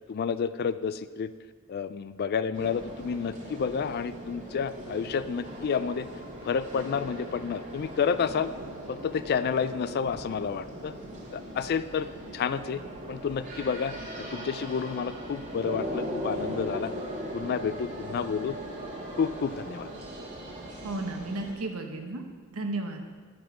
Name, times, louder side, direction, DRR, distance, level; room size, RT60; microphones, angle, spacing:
voice 1, 0.1-1.3 1.7-6.1 6.4-8.5 8.9-10.9 11.3-12.8 13.1-16.9 17.3-18.5 19.2-19.9, left 6 dB, 45° left, 14 dB, 0.3 m, -30 dB
sound 1, 2.5-21.5, equal, 40° right, 1.6 m, -39 dB
voice 2, 20.8-22.2 22.5-23.0, right 2 dB, 85° right, 4 dB, 1.0 m, -33 dB
9.2 x 5.0 x 5.9 m, 1.5 s
head